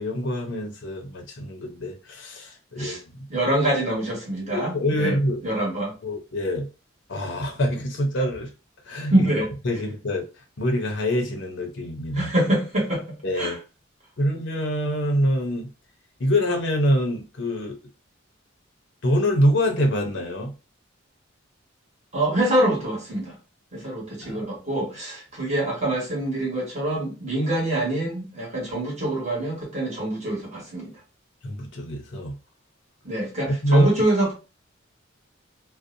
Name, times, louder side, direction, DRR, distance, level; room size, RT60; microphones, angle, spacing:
voice 1, 0.0-3.3 4.5-5.4 6.0-6.7 7.1-8.5 8.8-9.3 9.6-12.3 13.2-13.6 14.2-15.7 16.2-17.8 19.0-20.5 24.2-24.5 31.4-32.4 33.5-33.9, equal, 60° left, 0.6 m, -25 dB
voice 2, 3.3-5.2 5.4-5.9 9.1-9.5 12.1-13.0 13.4-13.6 22.1-23.3 23.7-30.9 33.0-34.3, right 1 dB, 35° right, 1.2 m, -25 dB
2.6 x 2.1 x 2.5 m
head